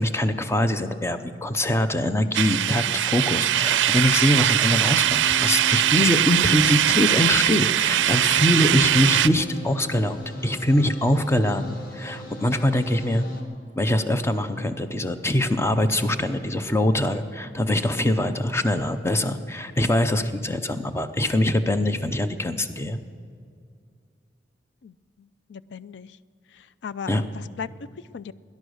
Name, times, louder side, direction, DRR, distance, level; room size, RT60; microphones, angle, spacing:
voice 1, 0.0-13.2 13.8-23.0 27.1-27.2, left 1 dB, 15° left, 9 dB, 0.6 m, -23 dB
sound 1, 2.3-9.3, right 12 dB, 90° right, 0.4 m, -21 dB
sound 2, 5.0-13.4, left 2 dB, 55° left, 1.7 m, -39 dB
voice 2, 24.8-26.2 26.5-28.3, left 6 dB, 75° left, 17 dB, 0.4 m, -39 dB
18.0 x 10.5 x 6.4 m, 2.3 s
head